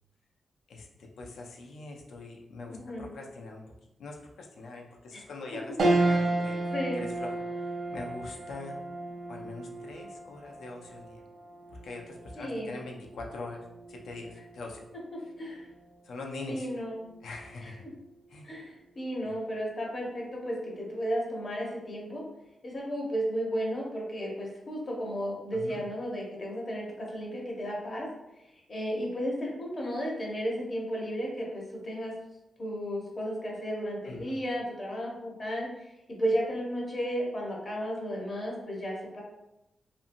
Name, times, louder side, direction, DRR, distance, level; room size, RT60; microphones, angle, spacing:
voice 1, 0.7-3.6 4.0-6.6 7.0-8.8 9.3-11.2 11.7-14.8 15.2-15.3 16.0-16.7 17.2-17.8 18.3-18.5 19.2-19.3 25.5-25.8 34.1-34.4, left 3 dB, 85° left, 1 dB, 0.4 m, -43 dB
voice 2, 2.7-3.1 5.1-5.2 6.7-7.0 12.4-12.8 15.1-15.7 16.5-17.1 17.6-17.7 18.4-22.3 22.6-28.1 28.4-32.1 32.6-39.2, equal, 35° left, -2 dB, 0.6 m, -34 dB
sound 1, 5.8-15.4 15.9-16.0 17.3-17.8, right 2 dB, 60° right, 0.4 m, -33 dB
2.7 x 2.6 x 2.5 m, 0.88 s
wide cardioid pair, 160°, 0 cm